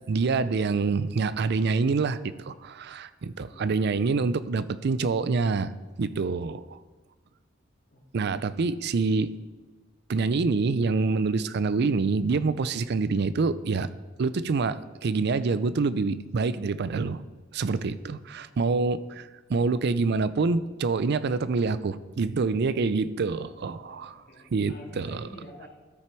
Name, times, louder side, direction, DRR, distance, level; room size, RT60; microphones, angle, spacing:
voice 1, 0.1-5.7 6.0-6.8 8.1-9.3 10.1-13.9 14.2-17.2 17.5-24.1 24.5-25.2, right 4 dB, 55° right, 15 dB, 0.4 m, -26 dB
voice 2, 7.9-8.6 18.4-18.9 23.4-25.7, left 1 dB, 50° left, -2 dB, 2.3 m, -50 dB
13.0 x 6.0 x 4.5 m, 1.2 s
head